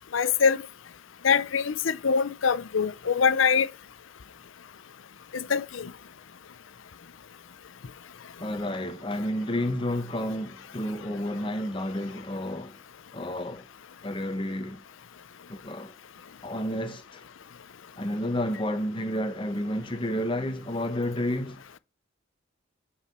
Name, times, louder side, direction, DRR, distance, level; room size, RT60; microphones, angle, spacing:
voice 1, 0.1-0.6 1.2-3.7 5.3-5.9, left 6 dB, 75° left, 0.6 m, -24 dB
voice 2, 8.4-12.8 13.1-13.6 14.0-14.8 15.5-15.9 16.4-17.2 18.0-21.6, left 1 dB, 25° left, 1.1 m, -31 dB
5.8 x 4.9 x 6.0 m
head